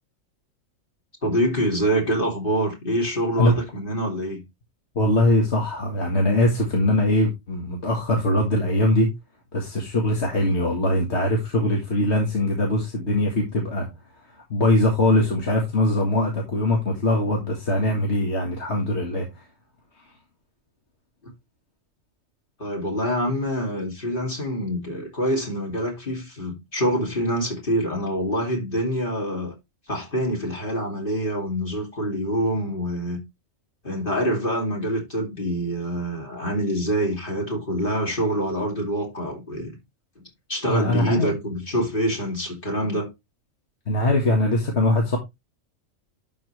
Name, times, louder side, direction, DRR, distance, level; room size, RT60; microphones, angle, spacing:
voice 1, 1.2-4.4 22.6-29.5 29.9-33.2 33.8-39.8 40.5-43.1, equal, 40° left, 2.8 m, -25 dB
voice 2, 5.0-9.1 9.5-13.9 14.5-19.3 40.6-41.3 43.9-45.2, left 1 dB, 55° left, 2.0 m, -22 dB
11.5 x 4.7 x 3.2 m
omnidirectional pair, 1.4 m